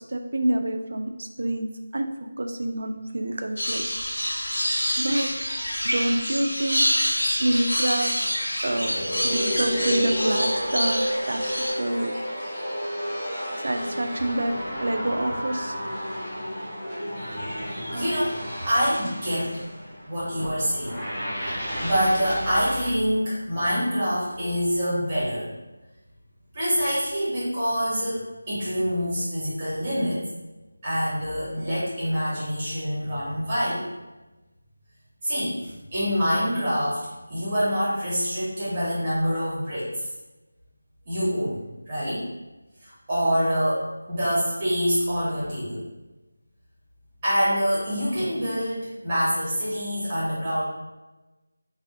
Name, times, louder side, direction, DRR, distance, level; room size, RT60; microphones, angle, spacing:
voice 1, 0.1-2.1 2.4-3.8 5.0-5.3 5.8-6.8 7.4-8.1 8.6-8.9 9.2-11.0 11.3-11.4 11.8-12.1 13.6-14.5 14.8-15.7, right 1 dB, 60° right, 5 dB, 0.3 m, -27 dB
sound 1, 3.6-11.7, equal, 70° left, 1.0 m, -27 dB
sound 2, 8.7-22.9, equal, 10° left, 0.7 m, -31 dB
voice 2, 17.9-19.6 20.1-21.0 21.4-25.5 26.5-30.2 30.8-33.8 35.2-39.9 41.0-42.3 42.8-45.8 47.2-50.7, equal, 10° right, -10 dB, 1.4 m, -26 dB
3.4 x 2.3 x 2.6 m, 1.1 s
figure-of-eight pair, 175°, 0 cm